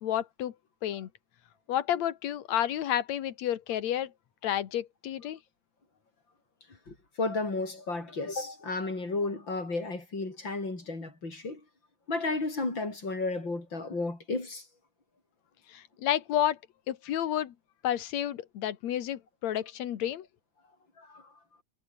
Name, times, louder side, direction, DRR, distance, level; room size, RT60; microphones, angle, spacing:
voice 1, 0.0-0.5 0.8-1.1 1.7-4.1 4.4-5.4 15.7-16.6 16.9-17.5 17.8-20.3, left 11 dB, 65° left, 2.6 m, -30 dB
voice 2, 6.9-11.6 12.1-14.6 21.0-21.3, left 3 dB, 35° left, 7.8 m, -33 dB
omnidirectional pair, 3.4 m